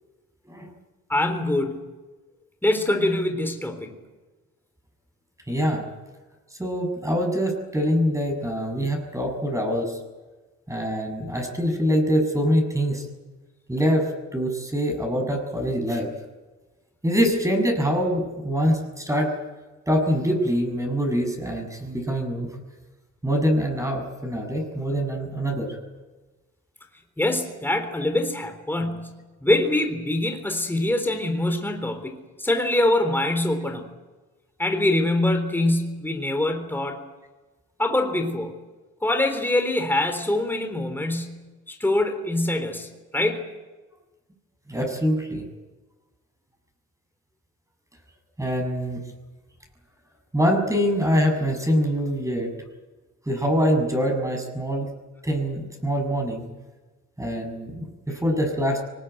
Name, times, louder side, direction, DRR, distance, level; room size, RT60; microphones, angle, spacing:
voice 1, 1.1-1.8 2.6-4.0 27.2-33.9 34.6-37.0 37.8-38.5 39.0-43.5, left 1 dB, 5° left, 5 dB, 3.8 m, -24 dB
voice 2, 5.5-5.9 6.6-10.0 10.7-13.1 13.7-16.1 17.0-19.3 19.9-22.5 23.2-25.8 44.7-45.5 48.4-49.0 50.3-52.5 53.3-54.9 55.2-56.5 57.2-58.8, equal, 10° right, 4 dB, 7.0 m, -24 dB
23.5 x 20.5 x 9.2 m, 1.2 s
cardioid pair, 90°, 30 cm